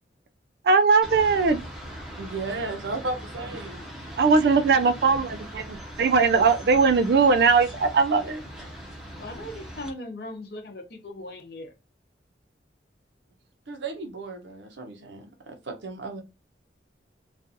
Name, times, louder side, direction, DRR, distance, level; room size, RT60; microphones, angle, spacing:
voice 1, 0.6-1.6 4.2-8.4, right 4 dB, 60° right, 0.3 m, -20 dB
sound 1, 1.0-9.9, equal, ahead, 0.6 m, -40 dB
voice 2, 2.2-3.8 13.7-16.2, right 3 dB, 80° right, 0.7 m, -34 dB
voice 3, 9.2-11.7, left 1 dB, 55° left, 0.6 m, -38 dB
2.5 x 2.3 x 2.6 m
head